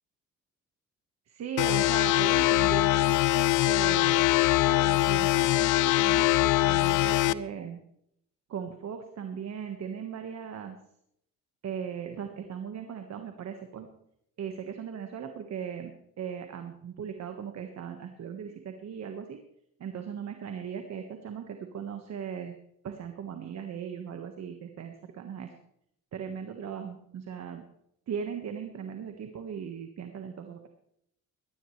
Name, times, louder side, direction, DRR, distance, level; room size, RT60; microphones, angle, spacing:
voice 1, 1.3-4.3 4.7-7.8 8.5-10.8 11.6-13.9 14.4-19.4 19.8-22.6 22.8-25.5 26.1-27.6 28.1-30.7, right 7 dB, 60° right, 5 dB, 1.6 m, -38 dB
sound 1, 1.6-7.3, left 17 dB, 85° left, 0.5 m, -23 dB
18.5 x 13.0 x 3.3 m, 0.74 s
cardioid pair, 90°, 30 cm